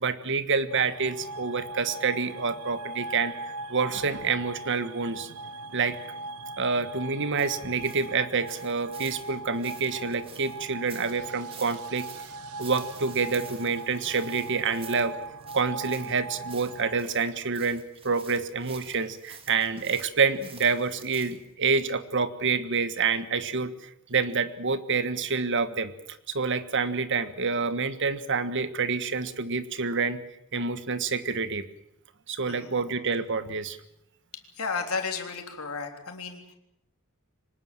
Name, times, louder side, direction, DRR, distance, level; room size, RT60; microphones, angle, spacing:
voice 1, 0.0-3.3 3.7-5.3 5.7-6.0 6.6-12.1 12.6-15.1 15.5-25.9 26.3-30.2 30.5-31.6 32.3-33.8, right 4 dB, 55° right, 12 dB, 1.5 m, -27 dB
sound 1, 0.7-17.0, right 3 dB, 80° right, 0.9 m, -40 dB
sound 2, 7.4-21.5, right 5 dB, 25° right, 2.8 m, -49 dB
voice 2, 32.5-32.8 34.6-36.6, left 4 dB, 75° left, 4 dB, 3.6 m, -33 dB
24.5 x 19.0 x 7.7 m, 0.81 s
head